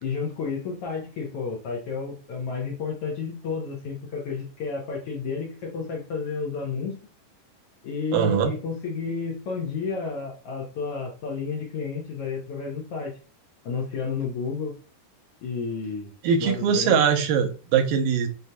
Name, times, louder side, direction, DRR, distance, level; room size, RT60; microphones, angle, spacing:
voice 1, 0.0-7.0 7.8-13.1 13.6-14.7 15.4-16.1 16.4-17.0, left 5 dB, 90° left, -2 dB, 1.3 m, -31 dB
voice 2, 8.1-8.5 16.2-18.3, right 7 dB, 85° right, 4 dB, 2.4 m, -21 dB
6.3 x 2.7 x 2.2 m, 0.36 s
omnidirectional pair, 3.9 m